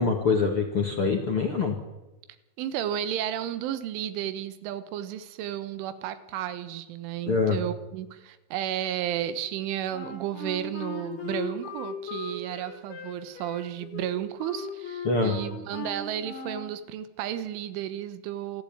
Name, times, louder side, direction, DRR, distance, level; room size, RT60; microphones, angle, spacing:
voice 1, 0.0-1.8 7.3-7.6 15.0-15.3, left 4 dB, 45° left, 3 dB, 1.8 m, -24 dB
voice 2, 2.6-18.6, right 11 dB, 90° right, 12 dB, 3.8 m, -33 dB
Wind instrument woodwind instrument, 9.9-16.7, left 4 dB, 75° left, 6.3 m, -38 dB
27.5 x 11.5 x 8.8 m, 1.0 s
omnidirectional pair, 5.4 m